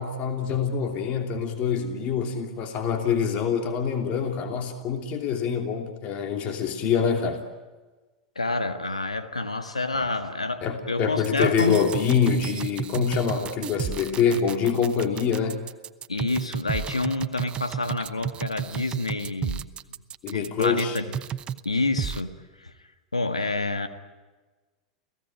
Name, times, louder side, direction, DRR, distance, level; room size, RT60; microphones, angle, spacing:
voice 1, 0.0-7.4 10.6-15.6 20.2-21.0, left 7 dB, 45° left, 4 dB, 2.9 m, -25 dB
voice 2, 8.3-11.9 16.1-19.7 20.3-21.2 21.6-22.7 23.1-23.9, left 2 dB, 90° left, 8 dB, 1.7 m, -28 dB
sound 1, 11.2-21.6 22.0-22.2, right 8 dB, 30° right, 0.8 m, -32 dB
29.5 x 17.0 x 8.9 m, 1.3 s
figure-of-eight pair, 85°, 3 cm